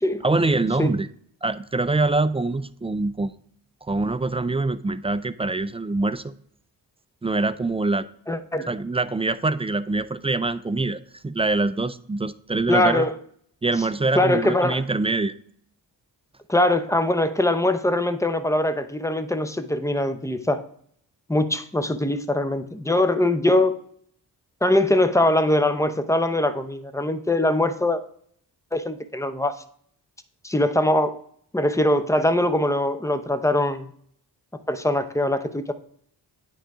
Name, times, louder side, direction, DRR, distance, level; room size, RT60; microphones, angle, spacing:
voice 1, 0.2-1.1 1.4-3.3 3.9-6.3 7.2-8.1 8.7-13.0 13.6-15.3, right 2 dB, 15° right, 13 dB, 0.3 m, -24 dB
voice 2, 8.3-8.7 12.7-13.2 14.1-14.8 16.5-20.6 21.3-23.8 24.6-28.0 28.7-29.6 30.4-31.2 31.5-33.9 34.7-35.7, left 1 dB, 5° left, 10 dB, 0.7 m, -22 dB
9.3 x 3.8 x 4.8 m, 0.63 s
cardioid pair, 60°, 43 cm